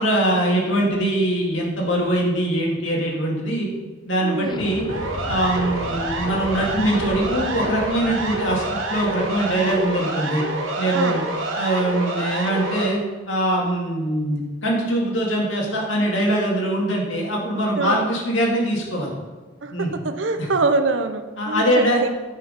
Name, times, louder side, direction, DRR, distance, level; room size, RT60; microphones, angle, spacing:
voice 1, 0.0-3.7 4.1-4.9 5.3-10.4 10.8-11.2 11.6-13.0 13.3-19.1 19.7-19.9 20.4-20.5 21.4-22.0, right 1 dB, 80° left, -2 dB, 2.1 m, -22 dB
voice 2, 4.2-4.6 10.9-11.2 17.8-18.0 19.6-22.1, right 3 dB, 70° right, 9 dB, 0.6 m, -24 dB
Explosion, 4.4-9.9, left 2 dB, 25° left, 0.3 m, -35 dB
Siren, 4.9-12.9, right 2 dB, 90° right, 1.2 m, -27 dB
9.4 x 4.6 x 5.2 m, 1.3 s
head